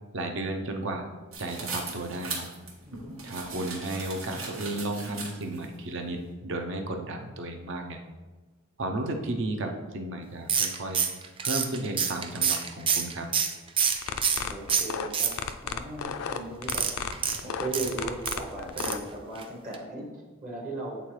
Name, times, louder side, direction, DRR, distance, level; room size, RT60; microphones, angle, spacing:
voice 1, 0.1-1.1 1.4-2.5 3.2-8.0 8.8-11.0 11.4-13.3, right 2 dB, 60° right, 4 dB, 0.7 m, -33 dB
sound 1, 1.3-5.7, right 4 dB, 80° right, 1.4 m, -38 dB
voice 2, 2.9-3.2 14.4-15.4 15.6-16.9 17.4-21.0, right 2 dB, 40° right, -2 dB, 1.1 m, -37 dB
sound 2, 10.5-14.4 14.7-15.7 16.6-18.4 18.8-19.1 19.4-19.5 19.7-19.8, right 7 dB, 25° right, 0.4 m, -27 dB
sound 3, 13.9-19.0, left 7 dB, 75° left, 0.4 m, -33 dB
8.3 x 3.8 x 3.2 m, 1.2 s
head